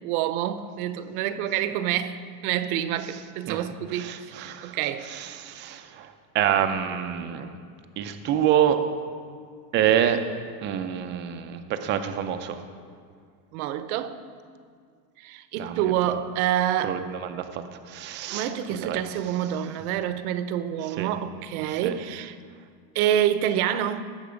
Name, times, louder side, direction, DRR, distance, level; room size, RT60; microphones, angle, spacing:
voice 1, 0.0-5.1 13.5-14.2 15.2-17.0 18.3-22.4 22.9-24.0, right 10 dB, 60° right, 0.8 m, -27 dB
voice 2, 3.9-4.8 5.0-7.5 8.0-8.8 9.7-10.2 10.6-12.6 15.6-15.8 16.8-19.0 21.0-21.1 21.7-22.0, right 10 dB, 25° right, 0.5 m, -27 dB
19.0 x 7.4 x 5.0 m
supercardioid pair, 155°, 49 cm